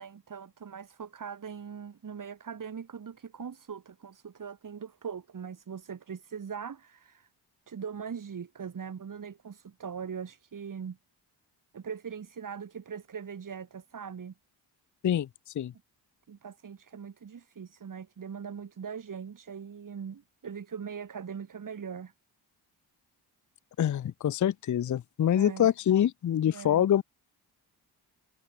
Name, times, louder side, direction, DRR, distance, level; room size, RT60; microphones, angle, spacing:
voice 1, 0.0-7.3 7.7-11.0 11.7-14.3 16.3-22.1 25.4-25.7 26.5-27.0, right 7 dB, 45° right, 1.8 m, -41 dB
voice 2, 23.8-27.0, left 10 dB, 45° left, 0.6 m, -25 dB
cardioid pair, 70°, 43 cm